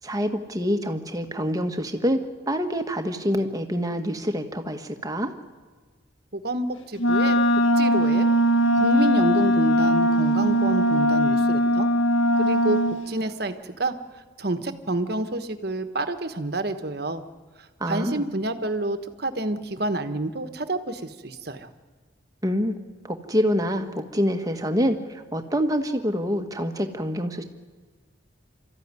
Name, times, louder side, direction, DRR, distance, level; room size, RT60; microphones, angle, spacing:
voice 1, 0.0-5.3 17.8-18.2 22.4-22.8 23.0-27.4, equal, 20° right, 6 dB, 1.3 m, -26 dB
voice 2, 6.3-7.4 7.8-8.3 8.7-11.9 12.4-13.9 14.4-17.2 17.8-21.7, right 2 dB, 50° right, 9 dB, 1.3 m, -28 dB
Wind instrument woodwind instrument, 7.0-13.0, equal, 80° left, 1.5 m, -20 dB
26.0 x 14.0 x 9.6 m, 1.4 s
head